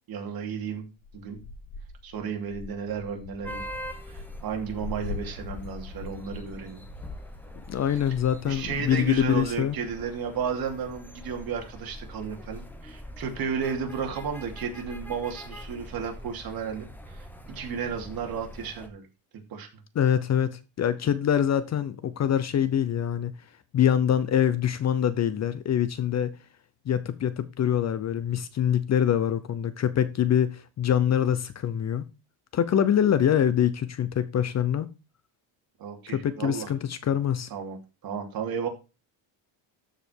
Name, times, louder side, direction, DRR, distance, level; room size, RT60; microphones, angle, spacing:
voice 1, 0.1-0.9 1.1-1.4 2.0-3.6 4.1-6.8 7.9-8.0 8.4-19.1 19.5-19.7 35.8-36.7 37.5-37.8 38.0-38.7, right 6 dB, 50° right, 2.8 m, -33 dB
sound 1, 1.0-8.5, left 4 dB, 70° left, 3.0 m, -42 dB
sound 2, 3.4-18.9, equal, 5° left, 1.1 m, -43 dB
voice 2, 7.7-9.8 20.0-23.3 23.7-26.3 26.9-32.0 32.5-34.9 36.1-37.5, left 9 dB, 35° left, 0.7 m, -24 dB
13.5 x 5.2 x 4.5 m
cardioid pair, 165°, 45 cm